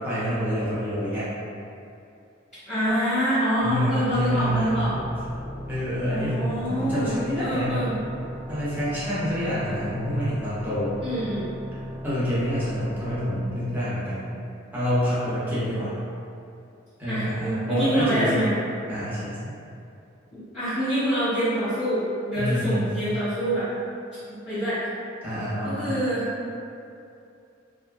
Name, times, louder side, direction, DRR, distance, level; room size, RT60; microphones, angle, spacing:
voice 1, 0.0-1.3 3.6-4.9 5.7-7.8 8.5-10.9 12.0-14.3 14.7-15.9 17.0-18.4 18.9-19.5 22.4-22.9 25.2-25.9, equal, 10° right, -11 dB, 0.6 m, -27 dB
voice 2, 2.7-4.9 6.1-8.0 11.0-11.5 17.0-18.5 20.3-23.7 24.4-24.9 25.6-26.3, equal, 35° left, -18 dB, 0.9 m, -26 dB
sound 1, 3.6-15.0, equal, 80° left, 0.8 m, -38 dB
2.6 x 2.3 x 2.3 m, 2.6 s
head